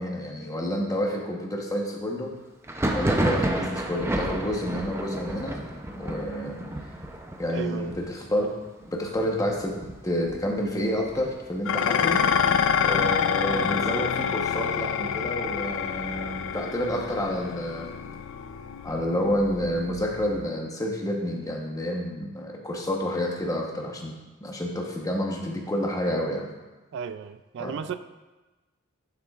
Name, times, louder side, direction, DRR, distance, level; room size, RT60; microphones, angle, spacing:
voice 1, 0.0-2.3 2.9-5.6 5.9-6.6 7.4-8.5 8.9-12.2 12.8-17.9 18.8-24.1 24.4-26.5 27.6-27.8, equal, 15° left, 0 dB, 1.0 m, -29 dB
Thunder, 2.6-12.1 12.4-13.1 13.3-14.3 14.7-16.4, right 1 dB, 10° right, 0.6 m, -32 dB
voice 2, 7.5-8.0 26.9-28.0, right 7 dB, 60° right, 11 dB, 0.3 m, -34 dB
Dishes pots and pans, 11.6-20.5, left 7 dB, 65° left, 0.4 m, -27 dB
11.5 x 6.8 x 2.4 m, 1.2 s
head